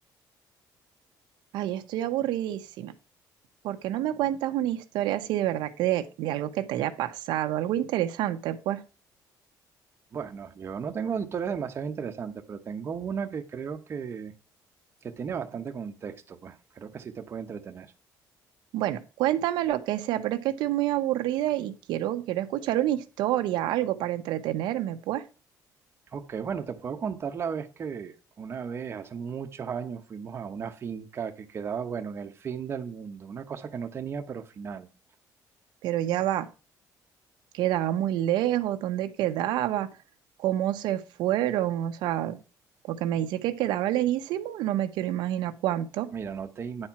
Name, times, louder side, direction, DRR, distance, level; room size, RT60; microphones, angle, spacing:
voice 1, 1.5-2.9 3.6-8.8 18.7-25.2 35.8-36.5 37.5-39.9 40.4-42.4 42.9-46.1, right 13 dB, 90° right, 0.8 m, -28 dB
voice 2, 10.1-14.3 15.0-17.9 26.1-34.9 46.1-46.9, right 6 dB, 35° right, 1.0 m, -35 dB
9.7 x 4.4 x 5.9 m
cardioid pair, 145°, 7 cm